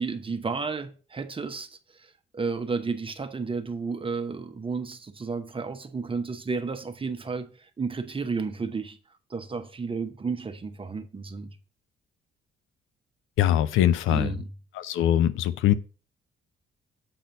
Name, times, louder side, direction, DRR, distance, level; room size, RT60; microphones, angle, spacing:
voice 1, 0.0-1.7 2.3-7.5 7.8-9.0 9.3-11.5 14.1-14.5, right 4 dB, 25° right, 0.8 m, -32 dB
voice 2, 13.4-14.3 14.8-15.7, left 11 dB, 85° left, 0.6 m, -22 dB
7.8 x 4.3 x 5.3 m
cardioid pair, 90°, 20 cm